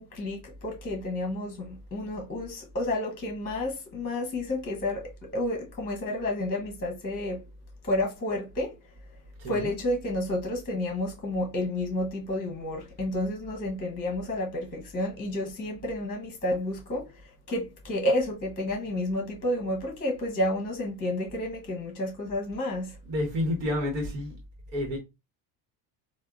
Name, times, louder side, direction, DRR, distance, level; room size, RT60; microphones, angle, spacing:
voice 1, 0.0-7.4 7.8-8.8 9.5-17.2 17.5-23.0, left 1 dB, 15° left, 0.8 m, -30 dB
voice 2, 9.4-9.7 23.1-24.4 24.7-25.0, left 1 dB, 80° right, 1.2 m, -29 dB
3.4 x 2.2 x 2.2 m
supercardioid pair, 105°, 49 cm